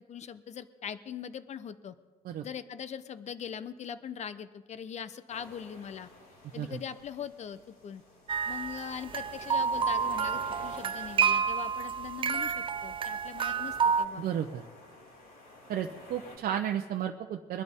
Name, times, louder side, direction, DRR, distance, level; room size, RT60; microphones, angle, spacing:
voice 1, 0.0-1.9 2.4-6.1 6.5-8.0 8.5-14.2, left 8 dB, 40° left, 13 dB, 0.8 m, -41 dB
sound 1, 5.3-16.4, left 2 dB, 60° left, 4.7 m, -52 dB
music box, 8.3-14.1, right 6 dB, 30° right, 0.4 m, -29 dB
voice 2, 14.2-14.6 15.7-17.6, right 9 dB, 60° right, 2 dB, 0.8 m, -33 dB
22.5 x 12.0 x 3.7 m, 1.3 s
cardioid pair, 110°, 17 cm